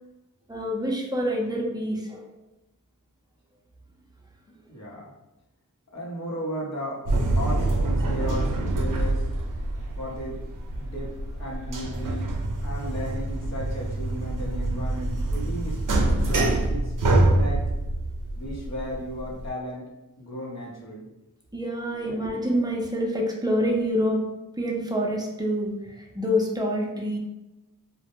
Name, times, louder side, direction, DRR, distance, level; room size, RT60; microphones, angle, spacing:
voice 1, 0.5-2.3 21.5-24.2 24.6-27.2, equal, 10° right, -1 dB, 0.5 m, -26 dB
voice 2, 4.7-5.1 5.9-7.1 7.3-9.3 10.0-10.4 10.8-12.3 12.6-15.8 16.1-17.7 18.4-19.9 20.2-21.1 22.1-22.2, equal, 55° left, -3 dB, 0.8 m, -35 dB
sound 1, 7.1-19.5, right 2 dB, 70° right, 0.5 m, -26 dB
2.1 x 2.1 x 2.9 m, 0.99 s
wide cardioid pair, 50°, 33 cm